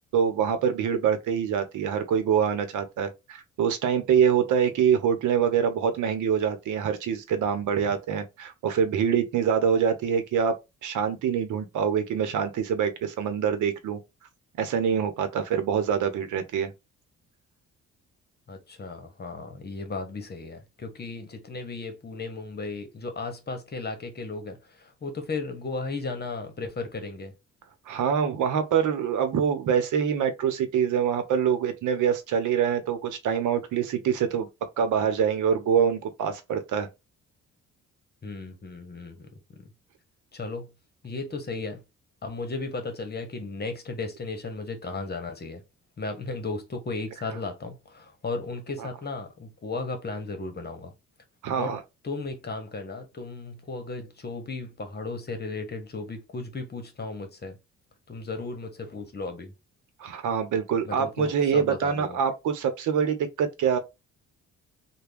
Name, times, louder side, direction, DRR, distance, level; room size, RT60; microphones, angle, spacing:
voice 1, 0.1-10.5 10.8-14.0 14.6-16.7 27.9-34.5 34.8-36.9 48.8-48.9 51.4-51.8 60.0-63.8, right 7 dB, 80° right, 0.8 m, -25 dB
voice 2, 18.5-27.3 38.2-39.3 39.6-39.7 40.3-40.7 41.0-41.8 42.2-45.6 46.0-50.9 51.6-51.8 52.0-57.6 58.1-59.5 60.8-62.2, left 3 dB, 35° left, 1.0 m, -35 dB
3.4 x 2.2 x 3.4 m
cardioid pair, 90°, 30 cm